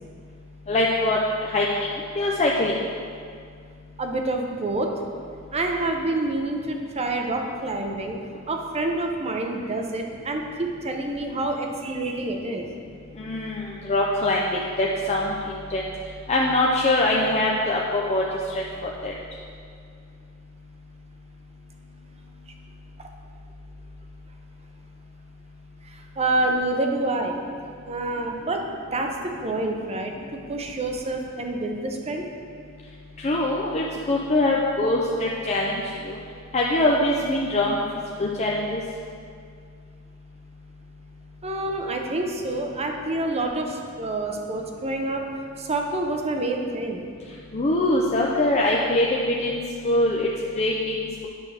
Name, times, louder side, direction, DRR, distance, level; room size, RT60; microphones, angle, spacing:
voice 1, 0.7-1.9 2.2-2.7 13.2-15.3 15.7-15.8 16.3-18.6 19.0-19.1 33.2-35.8 36.1-36.2 36.5-37.8 38.2-38.8 47.5-50.3 50.5-51.3, left 1 dB, 30° left, -3 dB, 0.5 m, -23 dB
voice 2, 4.0-4.9 5.5-8.2 8.5-12.7 23.0-23.1 25.8-27.4 27.9-28.6 28.9-32.3 41.4-45.3 45.6-47.0, right 2 dB, 30° right, 3 dB, 0.7 m, -27 dB
9.4 x 6.2 x 3.3 m, 2.2 s
head